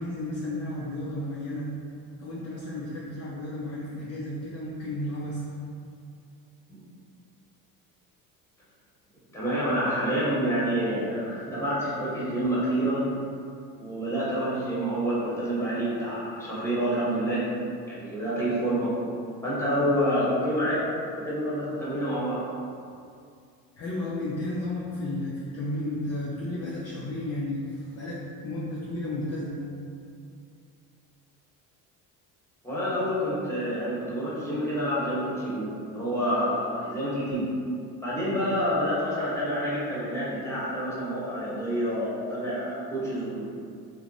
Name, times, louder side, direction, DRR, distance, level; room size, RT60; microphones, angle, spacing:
voice 1, 0.0-1.7 2.2-5.5 23.8-29.7, left 1 dB, 35° left, -6 dB, 0.5 m, -33 dB
voice 2, 9.3-13.2 13.8-17.5 17.9-18.9 19.4-20.8 21.1-22.4 32.6-37.5 38.0-43.4, equal, 5° left, -9 dB, 1.1 m, -28 dB
2.9 x 2.1 x 2.6 m, 2.4 s
hypercardioid pair, 70°, 47 cm